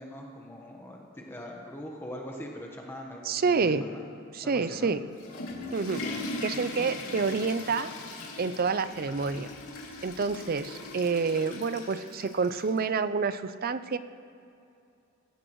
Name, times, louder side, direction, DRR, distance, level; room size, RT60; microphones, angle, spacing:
voice 1, 0.0-4.0 4.4-4.9 6.0-6.2, left 1 dB, 10° left, -1 dB, 1.2 m, -42 dB
voice 2, 3.3-3.8 4.3-5.0 5.7-6.0 6.4-7.9 8.4-9.5 10.0-14.0, right 4 dB, 45° right, 13 dB, 0.5 m, -28 dB
Water / Toilet flush, 4.9-12.8, left 2 dB, 90° left, 2.4 m, -40 dB
22.0 x 16.0 x 3.1 m, 2.6 s
head